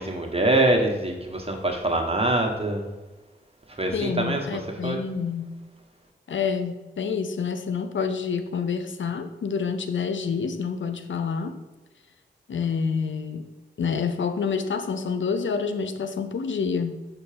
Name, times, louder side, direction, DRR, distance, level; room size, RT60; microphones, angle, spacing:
voice 1, 0.0-2.9 3.7-4.4 4.8-5.0, right 2 dB, 30° right, 2 dB, 1.6 m, -24 dB
voice 2, 3.9-5.6 6.3-11.6 12.5-13.5 13.8-16.9, left 6 dB, 80° left, 10 dB, 0.6 m, -28 dB
6.8 x 4.5 x 5.1 m, 1.2 s
cardioid pair, 40°, 19 cm